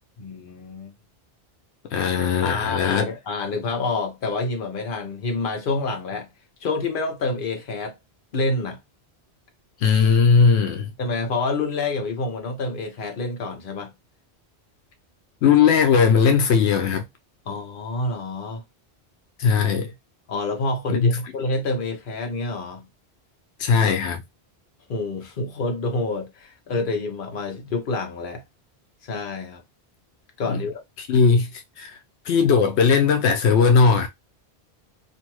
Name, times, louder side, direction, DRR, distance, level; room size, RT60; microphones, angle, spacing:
voice 1, 0.2-0.9 2.4-6.3 6.6-8.0 8.3-8.8 11.0-13.9 17.5-18.6 20.3-22.8 24.9-28.4 29.0-29.6 30.4-30.8, left 3 dB, 55° left, 1.0 m, -28 dB
voice 2, 1.9-3.1 9.8-10.9 15.4-17.0 19.4-19.9 20.9-21.2 23.6-24.2 30.5-30.6 31.0-32.0 32.3-34.1, left 5 dB, 85° left, 0.9 m, -18 dB
2.6 x 2.5 x 3.0 m
omnidirectional pair, 1.1 m